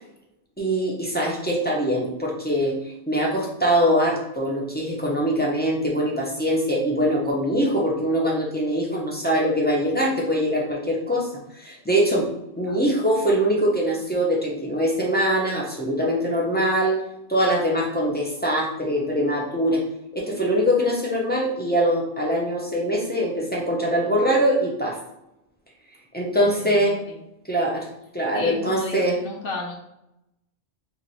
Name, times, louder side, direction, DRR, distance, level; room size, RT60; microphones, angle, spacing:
voice 1, 0.6-11.3 11.6-12.3 12.6-17.0 17.3-19.8 20.1-25.0 26.1-27.0 27.5-27.9 28.1-29.2, equal, 15° left, -3 dB, 0.4 m, -23 dB
voice 2, 26.3-27.2 27.6-27.7 28.3-29.8, left 2 dB, 60° left, 0 dB, 0.8 m, -34 dB
3.0 x 2.5 x 4.0 m, 0.83 s
omnidirectional pair, 1.2 m